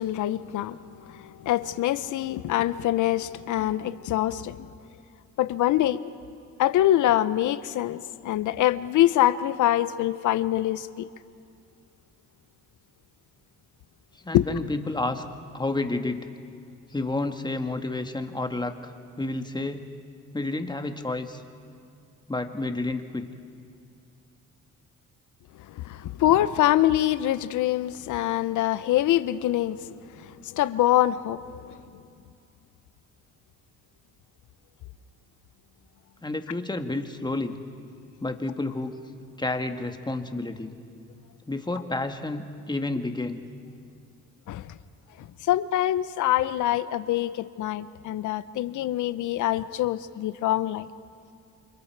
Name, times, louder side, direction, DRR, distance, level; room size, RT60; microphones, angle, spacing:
voice 1, 0.0-4.7 5.4-6.1 6.6-11.1 14.3-14.6 25.7-32.0 44.5-44.8 45.2-50.9, left 13 dB, 75° left, 0.8 m, -25 dB
voice 2, 14.2-15.2 15.5-16.3 16.9-18.7 19.2-19.9 20.3-21.4 22.3-23.3 36.2-37.6 38.2-39.0 39.4-40.7 41.5-43.4, left 2 dB, 15° left, 1.5 m, -30 dB
28.5 x 25.0 x 4.6 m
cardioid pair, 90°, 30 cm